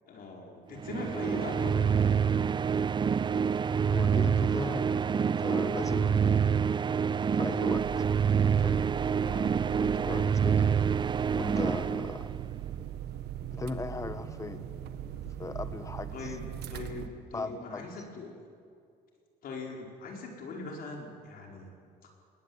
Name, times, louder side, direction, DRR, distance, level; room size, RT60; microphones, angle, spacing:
voice 1, 0.1-2.4 10.0-10.5 16.1-18.3 19.4-21.7, left 3 dB, 60° left, 0 dB, 4.8 m, -41 dB
sound 1, 0.8-12.6, right 7 dB, 25° right, 0.5 m, -27 dB
voice 2, 3.9-6.7 7.3-7.8 8.4-10.7 11.4-12.3 13.5-14.7 15.4-16.3 17.3-17.9, left 3 dB, 20° left, 10 dB, 1.5 m, -38 dB
sound 2, 7.7-17.1, right 10 dB, 75° right, 1.3 m, -40 dB
21.0 x 17.0 x 9.6 m, 2.4 s
cardioid pair, 110°, 17 cm